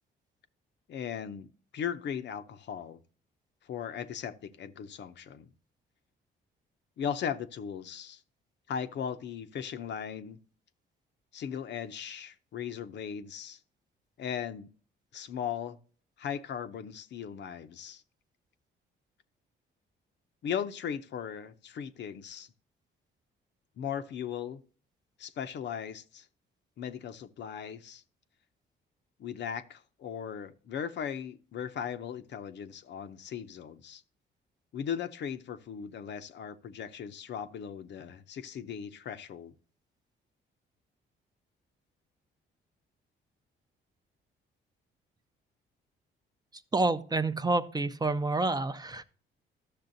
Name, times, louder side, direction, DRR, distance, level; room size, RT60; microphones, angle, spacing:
voice 1, 0.9-3.0 3.7-5.5 7.0-8.2 8.7-10.4 11.3-13.6 14.2-14.7 15.1-15.8 16.2-18.0 20.4-22.5 23.8-24.6 25.2-26.3 26.8-28.0 29.2-34.0 34.7-39.5, left 8 dB, 60° left, 0.7 m, -38 dB
voice 2, 46.7-49.0, right 2 dB, 20° right, 0.6 m, -28 dB
12.0 x 6.7 x 2.6 m
cardioid pair, 90°, 20 cm